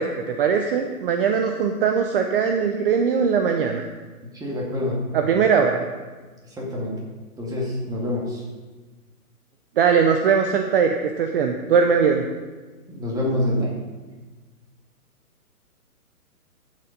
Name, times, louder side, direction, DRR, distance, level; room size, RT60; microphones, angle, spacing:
voice 1, 0.0-3.9 5.1-5.8 9.8-12.2, right 6 dB, 40° right, 4 dB, 0.8 m, -20 dB
voice 2, 4.3-5.0 5.3-5.4 6.6-6.9 7.4-8.4 12.9-13.8, left 1 dB, 10° right, -3 dB, 2.1 m, -26 dB
14.0 x 7.5 x 5.2 m, 1.3 s
hypercardioid pair, 140°, 45 cm